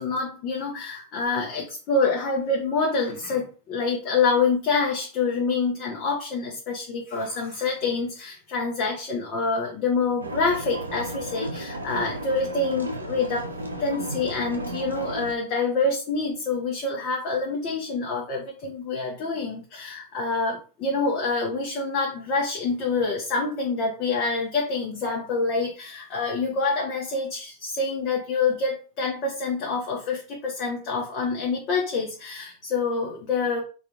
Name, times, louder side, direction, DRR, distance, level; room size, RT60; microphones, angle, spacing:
voice 1, 0.0-13.5 13.8-33.6, left 4 dB, 40° left, 0 dB, 0.7 m, -26 dB
sound 1, 10.2-15.3, right 1 dB, 75° right, 0.5 m, -34 dB
2.7 x 2.4 x 3.6 m, 0.37 s
figure-of-eight pair, 90°, 0 cm